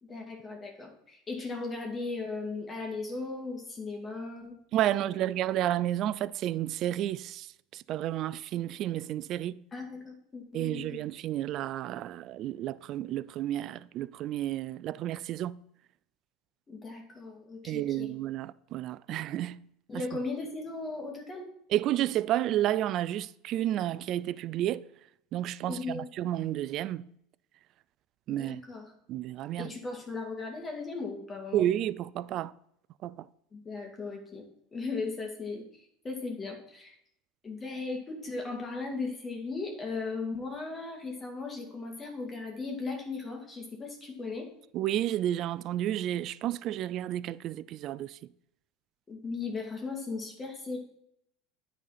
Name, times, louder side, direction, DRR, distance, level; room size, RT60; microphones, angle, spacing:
voice 1, 0.0-4.5 4.9-5.2 9.7-11.0 16.7-18.1 19.9-21.5 25.7-26.0 28.4-28.9 29.6-31.6 33.5-34.4 34.7-36.9 37.4-44.5 49.1-50.8, left 3 dB, 25° left, 2.1 m, -37 dB
voice 2, 4.7-9.6 10.5-15.6 17.6-19.6 19.9-20.0 21.7-24.9 25.3-27.1 28.3-28.6 29.1-29.7 31.5-32.5 33.0-33.3 44.7-48.2, right 12 dB, 50° right, 0.3 m, -31 dB
9.2 x 4.1 x 5.7 m
hypercardioid pair, 90°, 0 cm